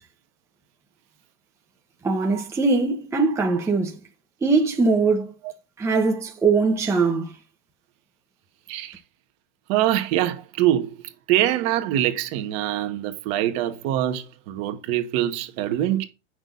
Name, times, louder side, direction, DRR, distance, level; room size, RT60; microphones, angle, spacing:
voice 1, 2.0-4.0 4.4-5.3 5.8-7.3, right 4 dB, 5° right, 1.0 m, -21 dB
voice 2, 8.7-9.0 9.7-11.0 11.3-16.0, right 12 dB, 40° right, 1.4 m, -24 dB
8.9 x 6.2 x 4.0 m
hypercardioid pair, 140°, 38 cm